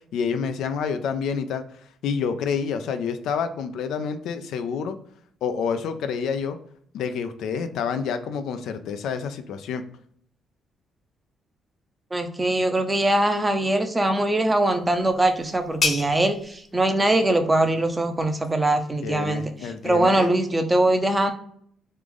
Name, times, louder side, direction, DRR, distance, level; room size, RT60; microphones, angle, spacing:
voice 1, 0.1-1.6 2.0-5.0 5.4-6.6 6.9-9.8 19.0-20.3, left 6 dB, 80° left, 9 dB, 0.4 m, -28 dB
voice 2, 12.1-21.3, right 1 dB, 15° right, 6 dB, 0.6 m, -22 dB
sound 1, 14.5-19.9, left 4 dB, 50° left, 0.8 m, -34 dB
3.2 x 2.5 x 3.6 m, 0.64 s
cardioid pair, 90°, 0 cm